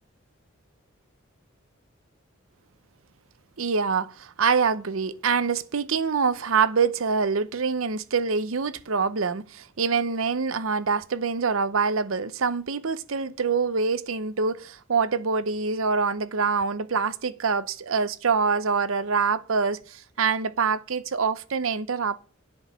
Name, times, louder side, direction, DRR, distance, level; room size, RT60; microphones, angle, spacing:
voice 1, 3.6-22.2, right 5 dB, 75° right, 0.7 m, -25 dB
8.5 x 6.2 x 7.3 m
head